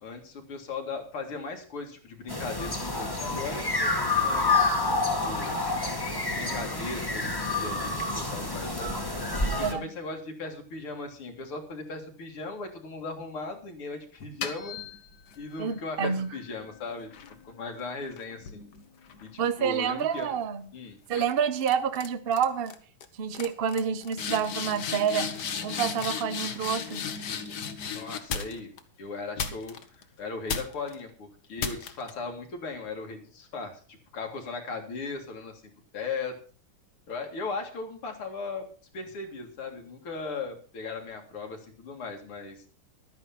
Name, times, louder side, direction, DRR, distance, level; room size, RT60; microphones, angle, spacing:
voice 1, 0.0-5.7 6.3-8.9 9.4-14.8 15.4-17.1 17.4-18.6 19.2-20.3 20.7-21.0 27.9-28.7 29.0-29.7 30.2-35.6 35.9-36.3 37.1-38.7 38.9-42.6, left 3 dB, 75° left, 3 dB, 3.1 m, -38 dB
sound 1, 2.3-9.7, left 3 dB, 10° left, 1.5 m, -28 dB
voice 2, 9.5-9.9 15.6-16.3 19.4-20.7 21.1-22.7 23.1-25.4 25.6-27.1, right 7 dB, 85° right, 12 dB, 0.5 m, -28 dB
sound 2, 14.2-15.4 16.0-19.6 20.0-20.4 21.1-21.3 21.6-22.1 22.3-22.7 23.0-23.1 23.3-28.8 29.4-30.0 30.5-31.0 31.6-32.1, left 6 dB, 55° left, 1.6 m, -36 dB
12.0 x 9.7 x 5.8 m, 0.41 s
omnidirectional pair, 2.4 m